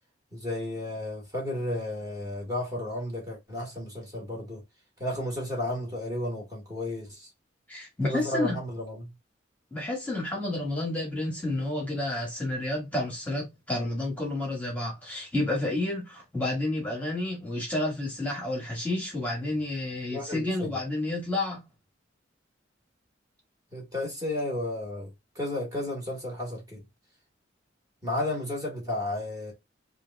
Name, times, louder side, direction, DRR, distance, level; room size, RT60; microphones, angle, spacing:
voice 1, 0.3-4.6 5.0-7.3 8.0-9.1 20.1-20.8 23.7-25.1 25.3-26.8 28.0-29.5, left 1 dB, 20° right, 1.5 m, -33 dB
voice 2, 7.7-8.6 9.7-21.6, left 2 dB, 10° left, 1.4 m, -30 dB
3.3 x 2.5 x 3.4 m
head